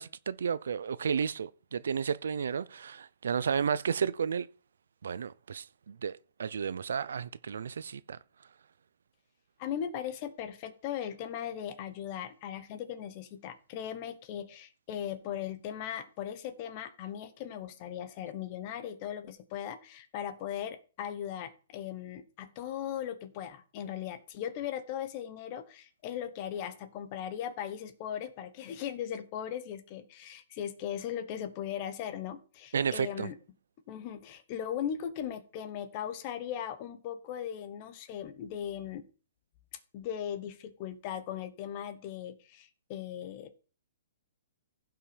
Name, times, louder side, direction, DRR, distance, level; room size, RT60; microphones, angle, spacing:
voice 1, 0.0-4.5 5.0-8.2 32.7-33.3, right 7 dB, 75° right, 0.6 m, -32 dB
voice 2, 9.6-33.3 33.9-39.0 39.9-43.6, left 9 dB, 25° left, 1.0 m, -38 dB
15.5 x 5.8 x 5.1 m
hypercardioid pair, 175°, 0 cm